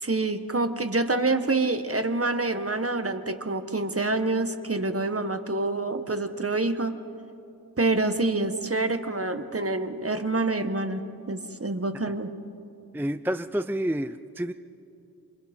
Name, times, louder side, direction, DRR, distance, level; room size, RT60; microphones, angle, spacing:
voice 1, 0.0-6.9 7.8-11.0 11.3-12.3, right 2 dB, 40° right, 8 dB, 1.4 m, -27 dB
voice 2, 12.9-14.5, right 1 dB, 5° right, 11 dB, 0.4 m, -29 dB
27.5 x 27.0 x 4.4 m, 2.7 s
wide cardioid pair, 60°, 37 cm